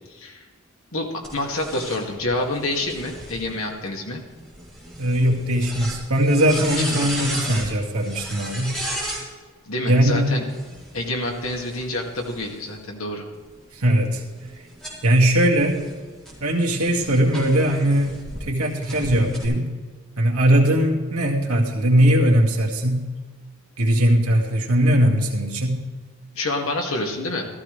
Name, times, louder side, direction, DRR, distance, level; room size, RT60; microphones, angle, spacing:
voice 1, 0.1-0.4 0.9-4.2 6.8-7.1 9.7-10.5 10.9-13.2 26.3-27.5, left 2 dB, 70° left, 1 dB, 2.1 m, -27 dB
sound 1, 1.2-9.2 10.4-12.8 13.3-18.4 18.8-19.5, right 1 dB, 5° left, 4.0 m, -35 dB
voice 2, 5.0-8.8 9.9-10.3 13.7-14.2 15.0-15.9 16.4-19.7 20.2-23.0 23.8-25.8, right 1 dB, 90° right, -1 dB, 2.1 m, -20 dB
14.5 x 14.0 x 3.3 m, 1.5 s
head